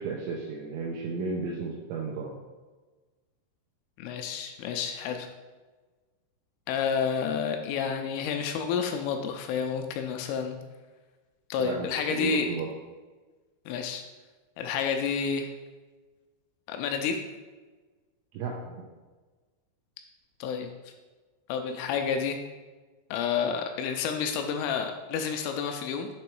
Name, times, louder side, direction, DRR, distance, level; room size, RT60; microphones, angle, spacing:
voice 1, 0.0-2.3 11.6-12.7 18.3-18.9, right 4 dB, 85° right, -1 dB, 2.6 m, -34 dB
voice 2, 4.0-5.3 6.7-10.6 11.5-12.5 13.7-14.0 14.6-15.5 16.7-17.2 20.4-20.7 21.5-22.4 23.1-26.1, left 6 dB, 85° left, 5 dB, 3.0 m, -29 dB
7.6 x 3.0 x 4.5 m, 1.3 s
omnidirectional pair, 5.8 m